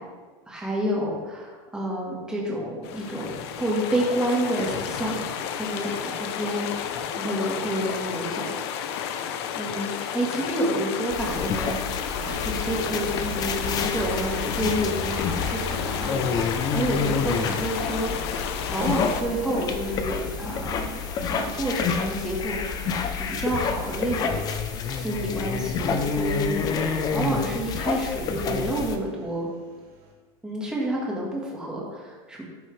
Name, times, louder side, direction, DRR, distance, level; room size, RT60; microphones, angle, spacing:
voice 1, 0.5-5.2 5.5-8.6 9.5-11.8 12.2-18.1 18.7-21.0 21.3-24.5 24.9-29.5 30.4-32.4, right 1 dB, 5° right, -3 dB, 1.6 m, -29 dB
sound 1, 2.8-19.2, left 8 dB, 65° left, 0.7 m, -32 dB
sound 2, 11.1-29.0, left 5 dB, 25° left, 0.6 m, -29 dB
Engine, 12.2-30.1, right 1 dB, 50° right, 1.5 m, -42 dB
11.5 x 6.2 x 3.3 m, 1.4 s
supercardioid pair, 165°, 15 cm